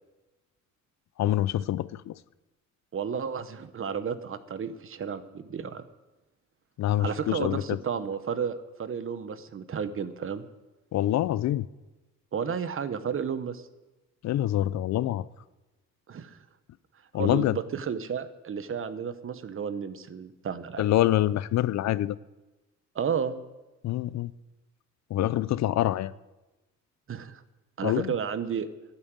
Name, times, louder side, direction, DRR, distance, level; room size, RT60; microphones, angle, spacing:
voice 1, 1.2-2.1 6.8-7.8 10.9-11.7 14.2-15.3 17.1-17.6 20.8-22.2 23.8-24.3 25.1-26.1 27.8-28.1, left 13 dB, 65° left, 0.5 m, -26 dB
voice 2, 2.9-5.8 7.0-10.4 12.3-13.6 16.1-16.4 17.1-20.9 22.9-23.4 27.1-27.4 27.8-28.7, right 7 dB, 45° right, 1.0 m, -32 dB
11.5 x 8.9 x 7.4 m
cardioid pair, 90°, 30 cm